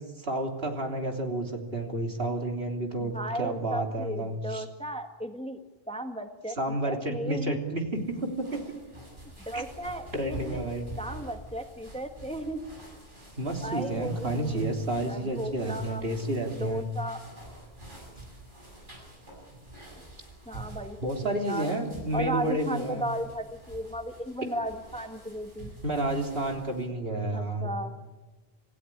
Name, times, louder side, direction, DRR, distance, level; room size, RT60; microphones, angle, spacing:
voice 1, 0.2-4.6 6.6-8.6 9.5-9.6 10.1-10.9 13.4-16.9 21.0-23.1 25.8-27.7, right 1 dB, 70° right, 3 dB, 3.4 m, -30 dB
voice 2, 3.0-5.6 5.9-7.8 9.4-10.6 11.0-12.8 13.6-14.6 15.1-16.0 16.6-17.2 20.5-21.7 22.1-25.7 27.3-27.9, right 1 dB, 5° left, 7 dB, 1.4 m, -35 dB
sound 1, 7.9-26.9, right 1 dB, 55° right, 7.9 m, -47 dB
27.0 x 16.0 x 9.9 m, 1.2 s
omnidirectional pair, 1.0 m